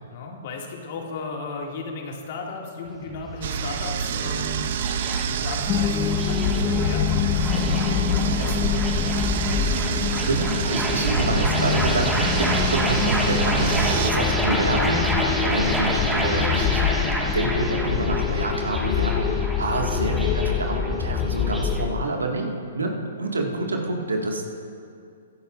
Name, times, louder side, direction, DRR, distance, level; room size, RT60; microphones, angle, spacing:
voice 1, 0.1-4.7 5.3-8.7, left 4 dB, 50° left, 0 dB, 2.1 m, -36 dB
sound 1, 2.9-21.8, right 1 dB, 5° right, 1.7 m, -29 dB
sound 2, 3.4-14.1, right 7 dB, 55° right, 0.7 m, -27 dB
sound 3, 5.7-22.0, left 9 dB, 25° left, 0.5 m, -26 dB
voice 2, 10.1-16.8 17.3-24.5, right 2 dB, 85° right, 1 dB, 1.8 m, -27 dB
22.0 x 11.5 x 2.5 m, 2.4 s
hypercardioid pair, 120°, 0 cm